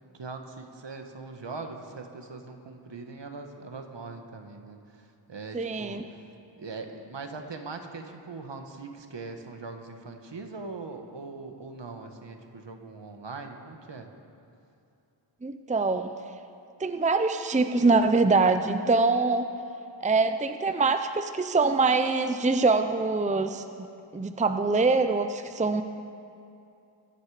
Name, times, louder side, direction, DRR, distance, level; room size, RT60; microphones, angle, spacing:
voice 1, 0.1-6.0 6.6-14.1, right 3 dB, 65° right, 5 dB, 1.6 m, -41 dB
voice 2, 5.5-6.1 15.4-16.1 16.8-19.5 20.0-23.9 24.1-25.8, right 3 dB, 15° right, 8 dB, 0.6 m, -24 dB
24.5 x 10.5 x 5.0 m, 2.6 s
wide cardioid pair, 65°, 46 cm